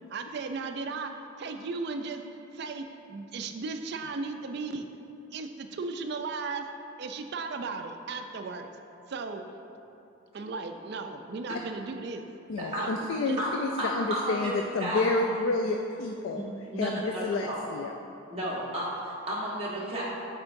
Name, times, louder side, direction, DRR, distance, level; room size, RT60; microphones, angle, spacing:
voice 1, 0.1-1.1 1.4-2.2 2.5-4.9 5.3-6.7 7.0-8.7 9.1-9.4 10.3-12.2 12.8-13.4, right 4 dB, 55° right, 6 dB, 0.4 m, -36 dB
voice 2, 12.5-16.4 16.8-17.9, left 3 dB, 75° left, 3 dB, 0.3 m, -29 dB
voice 3, 13.8-14.5 14.8-15.2 16.3-16.4 16.7-17.6 18.3-20.0, right 1 dB, 30° right, -7 dB, 1.2 m, -32 dB
8.4 x 4.4 x 2.6 m, 2.7 s
head